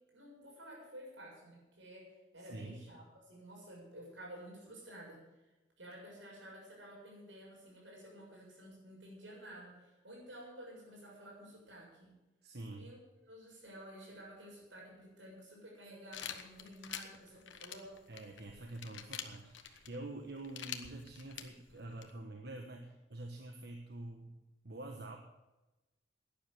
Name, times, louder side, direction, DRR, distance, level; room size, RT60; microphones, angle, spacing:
voice 1, 0.1-5.2 5.8-12.1 12.7-18.0, right 1 dB, 80° right, -3 dB, 7.0 m, -52 dB
voice 2, 2.4-2.9 12.4-12.9 18.1-24.4 24.6-25.2, right 2 dB, 55° right, 3 dB, 1.3 m, -47 dB
sound 1, 16.1-22.1, left 9 dB, 85° left, 1.3 m, -47 dB
12.0 x 10.5 x 8.5 m, 1.1 s
head